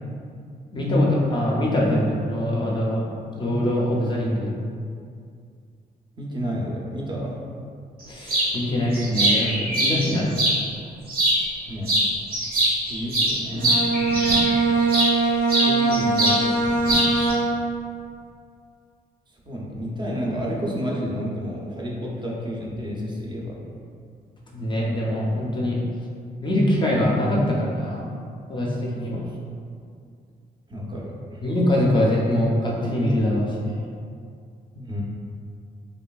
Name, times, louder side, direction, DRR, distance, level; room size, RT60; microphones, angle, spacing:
voice 1, 0.7-3.1 3.4-4.5 8.1-10.3 24.5-25.8 26.4-28.1 28.5-29.2 31.4-33.8, left 1 dB, 30° left, -4 dB, 0.4 m, -23 dB
voice 2, 6.2-7.4 11.7-11.9 12.9-13.8 15.4-16.6 19.5-23.6 29.1-29.6 30.7-31.4 34.7-35.0, equal, 30° right, -4 dB, 0.4 m, -30 dB
sound 1, 8.3-8.5 8.9-10.6 11.1-11.6 11.9-15.1 15.5-16.4 16.7-17.3, right 1 dB, 70° right, 0.8 m, -22 dB
Bowed string instrument, 13.5-17.8, right 3 dB, 85° right, 1.0 m, -22 dB
3.1 x 2.5 x 2.3 m, 2.3 s
cardioid pair, 125°, 16 cm